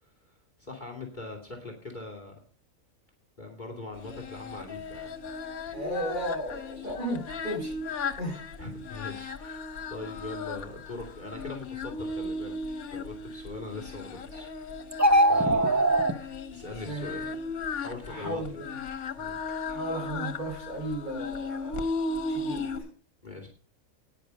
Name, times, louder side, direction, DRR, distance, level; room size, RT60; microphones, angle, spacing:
voice 1, 0.0-2.3 3.4-5.1 8.6-9.6 9.9-12.5 12.9-14.8 15.3-15.7 16.5-17.4 17.8-18.4 19.2-19.4 23.2-23.5, left 2 dB, 30° left, 2 dB, 2.6 m, -41 dB
Singing, 4.0-22.8, left 3 dB, 80° left, 1.6 m, -36 dB
voice 2, 5.7-7.7 8.2-8.4 15.6-16.2 16.8-17.2 18.1-18.8 19.7-21.8 22.3-22.6, right 1 dB, 35° right, -1 dB, 6.0 m, -35 dB
sound 1, 14.9-16.1, right 1 dB, 15° right, 0.7 m, -21 dB
10.5 x 9.8 x 5.4 m, 0.38 s
omnidirectional pair, 1.5 m